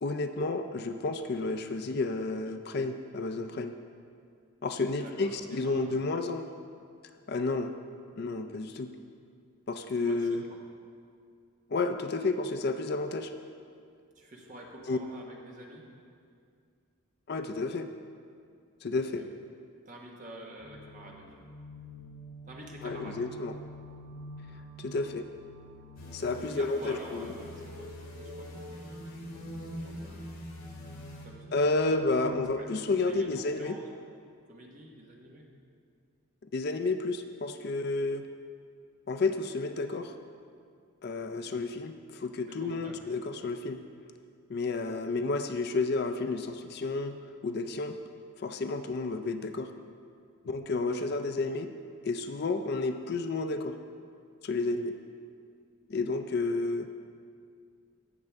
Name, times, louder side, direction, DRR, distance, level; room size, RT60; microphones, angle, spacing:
voice 1, 0.0-3.7 4.6-6.4 7.3-7.7 8.2-8.9 9.7-10.4 11.7-13.3 14.9-15.0 17.3-17.9 18.8-19.2 22.8-23.5 24.8-25.2 26.1-27.3 31.5-33.8 36.5-38.3 39.1-40.1 41.0-43.8 44.5-48.0 48.4-49.7 50.4-51.7 52.0-53.8 54.4-54.9 55.9-56.9, left 3 dB, 50° left, 8 dB, 0.4 m, -31 dB
voice 2, 5.0-6.1 9.9-10.6 14.1-15.9 19.2-19.3 19.8-21.4 22.4-23.3 26.4-30.3 31.2-31.8 32.1-33.9 34.5-35.4 41.4-41.5 42.4-43.0, right 1 dB, 35° right, -1 dB, 1.3 m, -48 dB
sound 1, 20.6-32.4, equal, 65° right, 1.7 m, -48 dB
sound 2, 26.0-31.3, equal, 75° left, 2.2 m, -44 dB
16.0 x 6.6 x 3.5 m, 2.3 s
head